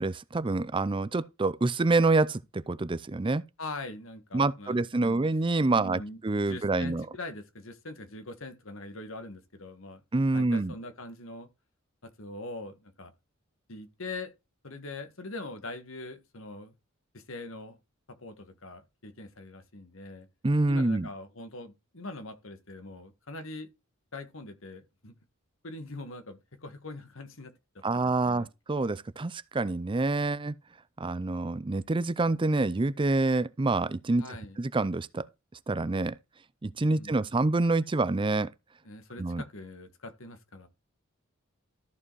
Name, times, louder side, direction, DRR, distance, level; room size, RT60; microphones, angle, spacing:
voice 1, 0.0-3.4 4.3-7.1 10.1-10.7 20.4-21.1 27.8-30.5 31.0-34.3 34.6-35.3 35.7-36.2 36.6-38.5 39.2-39.4, right 3 dB, 25° right, 0.5 m, -27 dB
voice 2, 3.6-5.3 5.7-10.0 10.3-11.5 12.0-13.1 13.7-14.3 14.6-16.8 17.1-17.8 18.1-20.3 20.7-23.7 24.1-25.1 25.6-28.5 34.2-34.6 36.8-37.2 38.8-40.7, left 2 dB, 70° left, 1.8 m, -42 dB
14.0 x 4.9 x 4.7 m
head